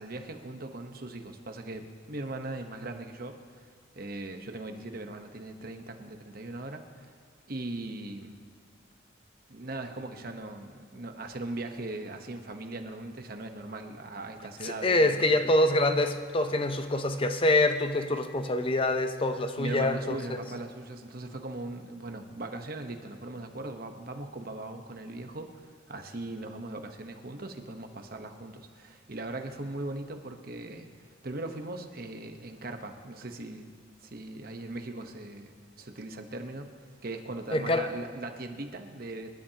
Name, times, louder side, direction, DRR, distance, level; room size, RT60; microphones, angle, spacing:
voice 1, 0.0-3.7 3.9-7.1 7.5-8.4 9.5-15.3 19.6-33.7 34.0-39.3, right 2 dB, 50° right, 6 dB, 1.0 m, -39 dB
voice 2, 14.6-20.4 37.5-37.9, left 2 dB, 25° left, 8 dB, 0.6 m, -25 dB
26.5 x 12.0 x 2.9 m, 2.1 s
head